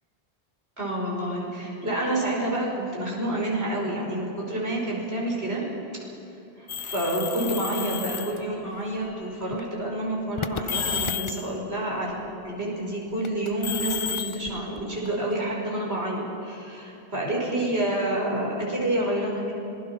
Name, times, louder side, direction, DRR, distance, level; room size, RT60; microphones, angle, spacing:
voice 1, 0.8-5.6 5.9-6.0 6.6-12.1 12.4-19.5, right 1 dB, 80° right, -3 dB, 5.8 m, -28 dB
sound 1, 6.7-8.4 9.3-9.6 10.4-11.5 13.2-15.3, left 7 dB, 35° left, 0.5 m, -31 dB
26.0 x 20.5 x 5.9 m, 2.9 s
omnidirectional pair, 1.1 m